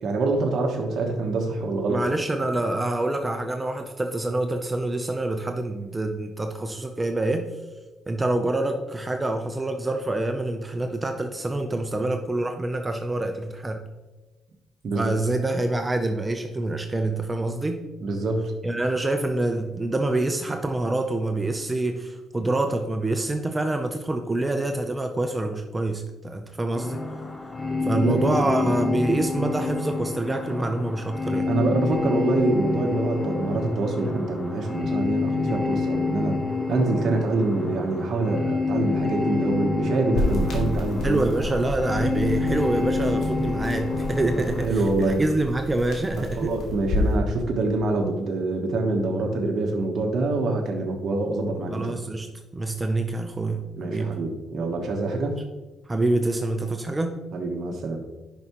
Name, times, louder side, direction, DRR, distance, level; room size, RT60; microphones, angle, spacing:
voice 1, 0.0-2.0 14.8-15.1 18.0-18.5 27.9-28.7 31.5-36.3 36.7-41.3 44.3-45.2 46.2-51.9 53.8-55.4 57.3-58.0, right 2 dB, 60° right, 1 dB, 1.1 m, -25 dB
voice 2, 1.9-7.5 8.1-13.8 14.9-17.8 18.6-27.0 27.8-31.5 41.0-46.5 51.7-52.3 52.5-54.1 55.9-57.2, right 2 dB, 20° right, 5 dB, 0.6 m, -26 dB
sound 1, 26.8-44.7, left 3 dB, 25° left, 0.9 m, -28 dB
sound 2, 40.1-47.2, left 1 dB, 75° left, 2.2 m, -30 dB
10.5 x 5.6 x 3.0 m, 1.2 s
cardioid pair, 90°, 0 cm